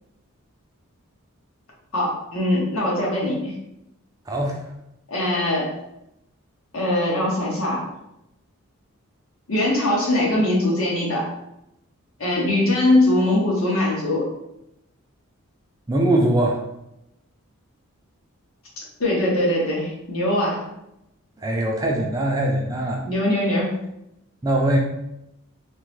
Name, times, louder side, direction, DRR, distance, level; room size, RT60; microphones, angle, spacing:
voice 1, 1.9-3.5 5.1-5.7 6.7-7.8 9.5-11.3 12.2-14.3 19.0-20.6 23.0-23.8, left 1 dB, 70° left, -3 dB, 1.0 m, -21 dB
voice 2, 4.3-4.6 15.9-16.6 21.4-23.0 24.4-24.8, right 1 dB, 15° right, 0 dB, 0.3 m, -21 dB
3.5 x 2.1 x 3.0 m, 0.83 s
head